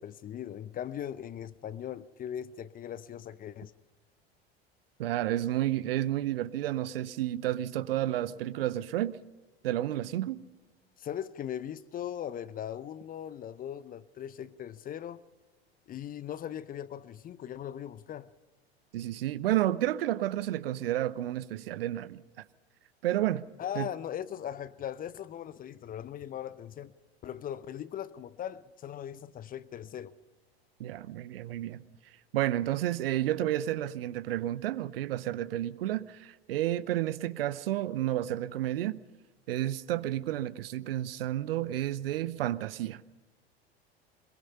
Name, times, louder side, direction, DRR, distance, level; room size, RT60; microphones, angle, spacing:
voice 1, 0.0-3.7 11.0-15.2 15.9-18.3 23.6-26.9 27.2-30.1, left 10 dB, 25° left, 0.7 m, -39 dB
voice 2, 5.0-9.2 9.6-10.4 18.9-22.2 23.0-23.5 23.8-23.9 30.8-31.8 32.3-39.0 39.5-43.0, right 13 dB, 65° right, 0.8 m, -31 dB
22.5 x 21.5 x 5.5 m
figure-of-eight pair, 80°, 32 cm